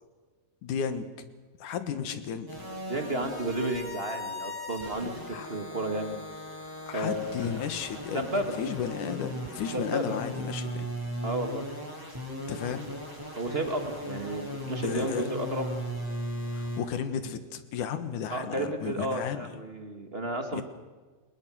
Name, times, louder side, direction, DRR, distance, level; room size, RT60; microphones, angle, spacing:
voice 1, 0.6-1.1 1.6-2.5 5.3-5.5 6.9-8.3 8.6-10.9 12.5-12.9 14.8-15.2 16.5-19.5 20.5-20.6, left 7 dB, 65° left, 10 dB, 2.8 m, -33 dB
sound 1, 2.5-16.8, equal, 5° right, 7.2 m, -37 dB
voice 2, 2.9-6.2 6.9-7.6 8.1-8.6 9.7-10.2 11.2-11.7 13.3-15.7 18.3-20.6, right 1 dB, 35° right, 6 dB, 0.9 m, -32 dB
29.5 x 20.0 x 6.3 m, 1.4 s
omnidirectional pair, 4.0 m